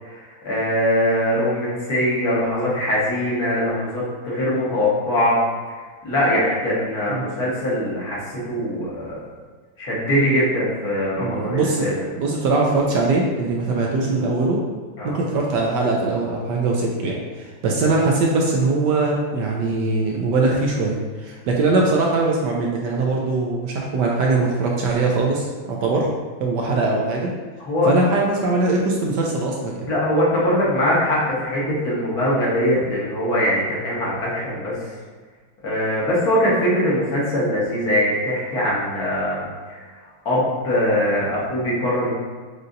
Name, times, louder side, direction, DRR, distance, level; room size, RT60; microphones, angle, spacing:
voice 1, 0.0-5.4 5.7-5.8 6.0-9.2 9.8-11.9 15.0-15.2 27.6-27.9 29.9-34.9 35.6-39.8 40.2-42.1, left 1 dB, 55° left, -6 dB, 1.6 m, -22 dB
voice 2, 11.2-11.8 12.2-14.6 15.0-26.1 26.4-27.3 27.8-29.9, right 3 dB, 70° right, -1 dB, 1.1 m, -21 dB
6.4 x 2.7 x 2.6 m, 1.5 s
omnidirectional pair, 2.1 m